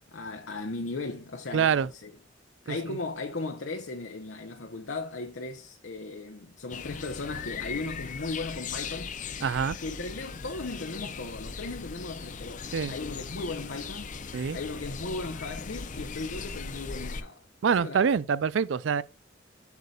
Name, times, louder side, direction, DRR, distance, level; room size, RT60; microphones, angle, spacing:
voice 1, 0.1-2.1 2.7-9.2 9.8-14.1 14.5-18.1, left 3 dB, 70° left, 0.8 m, -37 dB
voice 2, 1.5-1.9 2.7-3.0 9.4-9.8 12.7-12.9 14.3-14.6 17.6-19.0, right 6 dB, 70° right, 0.4 m, -25 dB
sound 1, 6.7-17.2, left 5 dB, 40° left, 0.6 m, -39 dB
8.1 x 6.6 x 2.4 m
head